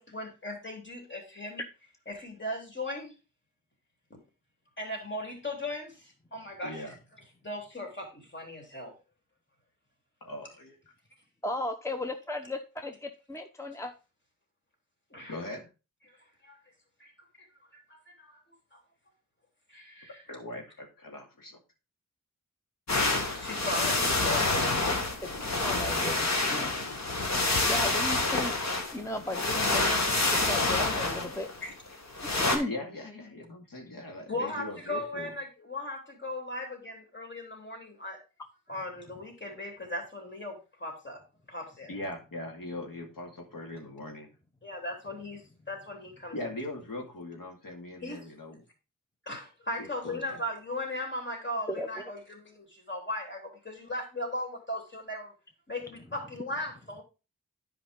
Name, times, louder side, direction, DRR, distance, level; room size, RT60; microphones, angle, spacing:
voice 1, 0.0-1.6 2.1-3.1 4.8-6.9 7.4-8.9 15.1-15.4 16.4-16.6 17.0-17.1 17.4-17.5 17.9-18.4 18.7-18.8 19.7-20.2 23.3-24.6 31.6-31.7 34.3-38.2 38.7-41.2 41.5-41.9 44.6-46.5 48.0-48.2 49.3-55.3 55.7-57.0, left 1 dB, 35° left, 1 dB, 3.5 m, -37 dB
voice 2, 6.6-7.0 10.2-10.8 15.3-15.7 20.3-21.6 32.7-35.3 41.9-44.3 46.3-48.6 49.8-50.4, left 1 dB, 85° left, 1 dB, 2.3 m, -40 dB
voice 3, 11.4-13.9 24.2-24.4 25.2-25.3 25.6-26.7 27.7-28.6 28.9-31.5 32.5-32.7 51.7-52.0, left 1 dB, 10° left, 5 dB, 0.9 m, -35 dB
sound 1, 22.9-32.6, left 2 dB, 55° left, 1.7 m, -27 dB
10.5 x 5.2 x 3.7 m, 0.31 s
wide cardioid pair, 90°, 33 cm